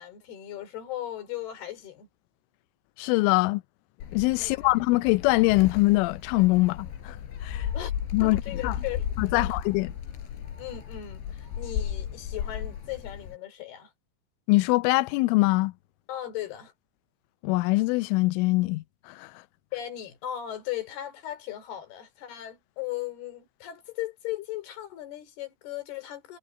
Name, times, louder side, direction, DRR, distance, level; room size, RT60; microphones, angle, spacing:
voice 1, 0.0-2.1 4.4-4.7 7.7-7.9 8.2-9.0 9.3-9.6 10.6-13.9 16.1-16.7 19.7-26.4, left 12 dB, 60° left, 4.8 m, -37 dB
voice 2, 3.0-3.6 4.1-7.2 7.4-7.7 8.1-8.8 9.2-9.9 14.5-15.7 17.4-19.3, left 22 dB, 90° left, 3.1 m, -23 dB
Gull seagull, 4.0-13.4, left 9 dB, 75° left, 5.1 m, -35 dB
omnidirectional pair, 5.5 m